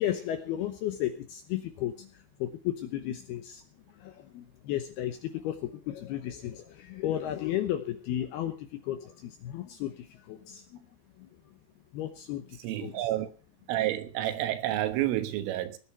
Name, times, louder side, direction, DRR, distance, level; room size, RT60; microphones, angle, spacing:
voice 1, 0.0-3.6 3.9-10.9 11.2-11.3 11.9-13.1, left 12 dB, 80° left, 2.4 m, -34 dB
voice 2, 12.6-13.3 13.7-15.8, right 14 dB, 85° right, 3.8 m, -29 dB
19.0 x 9.4 x 5.8 m
omnidirectional pair, 5.6 m